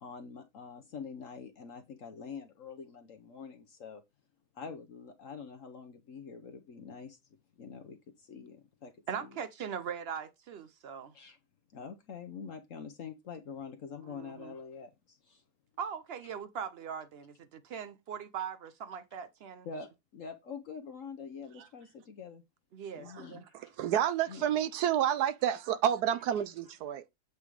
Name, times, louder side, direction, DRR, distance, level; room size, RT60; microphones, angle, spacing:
voice 1, 0.0-4.0 4.5-7.2 7.6-8.9 9.2-9.4 11.1-11.4 11.7-15.4 19.6-22.4 22.9-23.7 24.3-24.4, left 6 dB, 55° left, 1.1 m, -45 dB
voice 2, 9.1-11.1 14.0-14.5 15.8-19.7 22.7-23.5, right 7 dB, 90° right, 0.5 m, -40 dB
voice 3, 23.8-25.5 25.8-27.0, right 10 dB, 70° right, 1.1 m, -29 dB
8.1 x 3.6 x 4.7 m
omnidirectional pair, 1.8 m